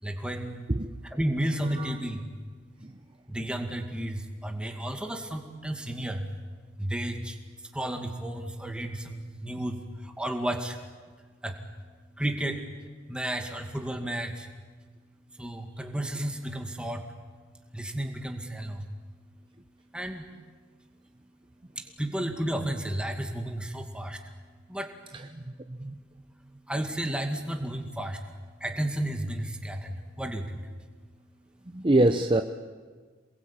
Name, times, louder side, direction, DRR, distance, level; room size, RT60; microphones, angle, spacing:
voice 1, 0.0-0.7 1.0-2.3 3.3-6.3 6.8-10.8 11.4-11.6 12.2-12.6 13.1-14.5 15.3-17.1 17.7-18.9 19.9-20.3 21.8-24.2 24.7-24.9 26.7-28.2 28.6-30.7, right 1 dB, 5° right, 4 dB, 2.2 m, -32 dB
voice 2, 31.7-32.4, right 1 dB, 25° right, 7 dB, 0.8 m, -23 dB
28.0 x 21.0 x 8.8 m, 1.5 s
head